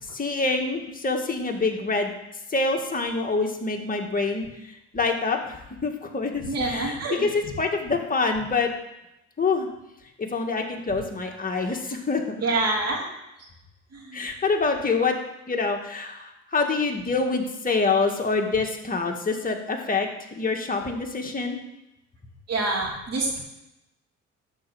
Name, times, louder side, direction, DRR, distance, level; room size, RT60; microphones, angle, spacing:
voice 1, 0.0-2.1 2.5-8.7 9.4-9.7 10.2-12.2 14.1-15.2 15.5-20.1 20.4-21.6, left 4 dB, 30° left, 2 dB, 1.8 m, -26 dB
voice 2, 6.5-7.2 11.5-11.7 12.4-13.0 13.9-14.2 22.5-23.4, right 2 dB, 55° right, -1 dB, 3.3 m, -26 dB
12.0 x 4.5 x 7.8 m, 0.90 s
cardioid pair, 90°, 30 cm